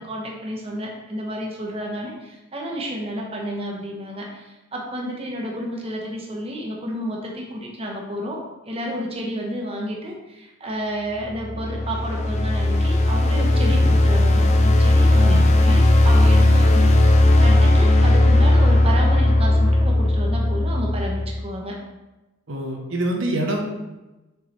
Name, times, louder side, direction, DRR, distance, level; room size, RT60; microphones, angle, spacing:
voice 1, 0.0-8.4 8.7-21.8, equal, 30° right, -1 dB, 0.9 m, -31 dB
sound 1, 11.2-21.4, left 1 dB, 35° left, 0.6 m, -16 dB
voice 2, 22.5-23.6, right 1 dB, 65° right, 0 dB, 0.9 m, -26 dB
6.8 x 4.7 x 3.2 m, 1.1 s
head